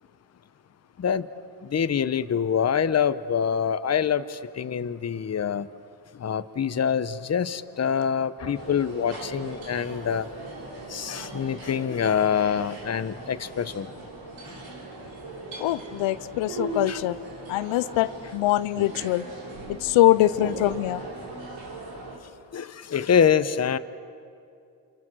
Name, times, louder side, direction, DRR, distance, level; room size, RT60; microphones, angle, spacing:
voice 1, 1.6-5.7 6.2-10.3 10.9-13.9 16.9-17.0 22.5-23.8, left 7 dB, 35° left, 12 dB, 1.0 m, -25 dB
sound 1, 8.5-22.2, right 2 dB, 75° right, 5.5 m, -39 dB
voice 2, 15.6-17.2 17.5-19.3 19.8-21.0, left 15 dB, 80° left, 16 dB, 0.8 m, -23 dB
27.5 x 26.0 x 6.3 m, 2.5 s
supercardioid pair, 65°, 45 cm